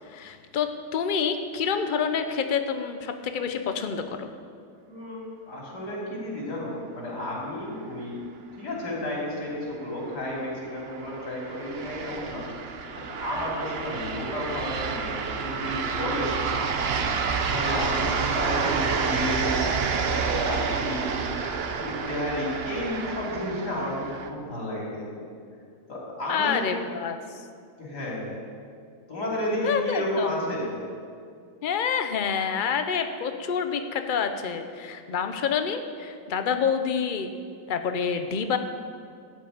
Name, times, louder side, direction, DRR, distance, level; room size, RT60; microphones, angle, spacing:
voice 1, 0.1-4.3 26.3-27.2 29.6-30.6 31.6-37.3 37.7-38.6, left 6 dB, 65° left, 7 dB, 0.5 m, -27 dB
voice 2, 4.9-8.3 8.6-12.4 13.1-16.6 17.5-19.6 20.0-21.1 21.8-25.1 25.9-26.7 27.8-28.3 29.1-30.7, left 1 dB, 80° left, -4 dB, 3.7 m, -32 dB
sound 1, 9.4-24.3, right 5 dB, 55° right, 0.7 m, -29 dB
12.5 x 5.5 x 8.8 m, 2.2 s
omnidirectional pair, 1.8 m